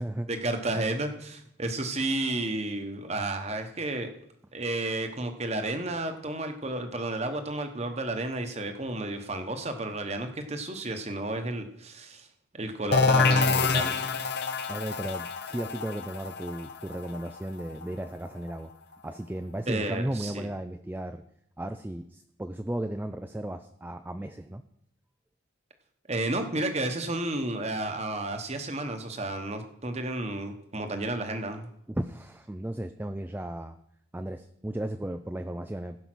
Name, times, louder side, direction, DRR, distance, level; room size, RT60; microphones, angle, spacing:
voice 1, 0.3-4.1 4.5-12.3 12.5-14.0 19.7-20.5 26.1-31.7, right 2 dB, 30° right, 6 dB, 1.1 m, -32 dB
sound 1, 12.9-18.5, left 4 dB, 50° left, 0.8 m, -27 dB
voice 2, 14.7-18.7 19.0-21.2 21.6-24.6 31.9-33.8 34.1-36.0, right 1 dB, 10° right, 8 dB, 0.3 m, -35 dB
16.0 x 5.4 x 6.1 m, 0.74 s
head